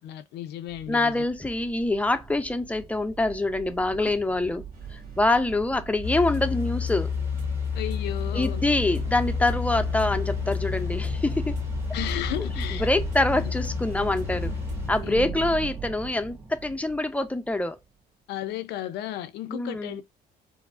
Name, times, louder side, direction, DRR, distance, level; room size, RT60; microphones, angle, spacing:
voice 1, 0.0-1.2 4.0-4.1 7.7-8.7 11.9-12.9 13.3-13.5 14.4-14.6 15.0-15.3 15.6-15.7 18.3-20.0, left 13 dB, 80° left, 0.5 m, -34 dB
sound 1, 0.7-17.7, right 6 dB, 35° right, 2.0 m, -38 dB
voice 2, 0.9-4.6 4.9-7.1 8.3-11.6 12.8-14.5 14.9-17.8 19.5-20.0, left 2 dB, 10° left, 0.5 m, -25 dB
sound 2, 4.7-15.2, right 2 dB, 55° right, 1.8 m, -47 dB
sound 3, 6.0-14.9, left 7 dB, 15° right, 0.9 m, -30 dB
4.6 x 2.0 x 2.4 m
cardioid pair, 110°, 17 cm